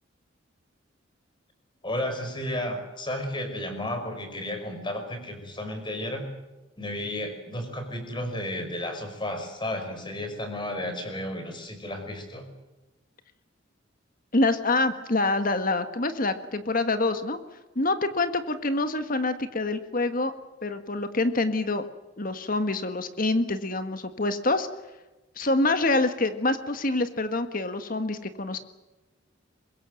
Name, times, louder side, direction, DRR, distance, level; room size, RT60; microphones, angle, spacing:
voice 1, 1.8-6.2 6.8-12.5, left 1 dB, 25° left, 6 dB, 5.4 m, -33 dB
voice 2, 14.3-17.4 17.7-20.3 20.6-21.8 22.2-24.7 25.4-28.6, left 2 dB, 45° left, 9 dB, 1.6 m, -26 dB
24.0 x 21.5 x 7.8 m, 1.1 s
head